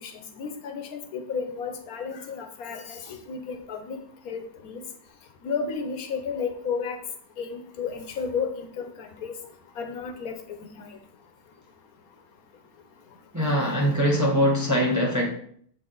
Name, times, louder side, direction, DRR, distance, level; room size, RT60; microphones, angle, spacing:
voice 1, 0.0-4.0 4.2-4.8 5.4-7.0 7.4-9.3 9.8-10.9, left 5 dB, 75° left, 1.3 m, -33 dB
voice 2, 13.3-15.3, equal, 15° right, 0.8 m, -22 dB
7.1 x 4.1 x 3.8 m
omnidirectional pair, 1.5 m